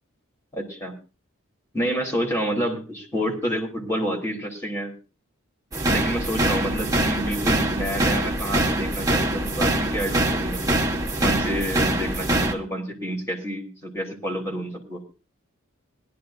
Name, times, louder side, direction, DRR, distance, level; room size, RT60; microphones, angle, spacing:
voice 1, 0.5-0.9 1.7-4.9 5.9-10.8 11.2-15.0, equal, 15° left, 0 dB, 3.7 m, -28 dB
sound 1, 5.7-12.5, right 1 dB, 15° right, 1.2 m, -24 dB
20.0 x 12.0 x 2.6 m, 0.32 s
head